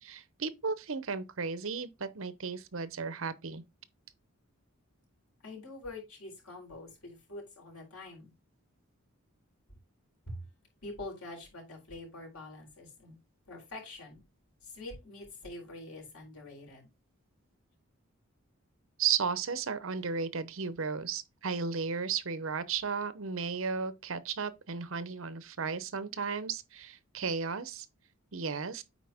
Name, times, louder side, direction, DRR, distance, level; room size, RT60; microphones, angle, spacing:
voice 1, 0.0-3.6 19.0-27.9 28.3-28.8, right 5 dB, 70° right, 0.8 m, -34 dB
voice 2, 5.4-8.3 10.3-10.4 10.8-13.2 13.5-14.2 14.6-16.9, left 2 dB, 90° left, 4.2 m, -45 dB
9.1 x 4.3 x 3.5 m
head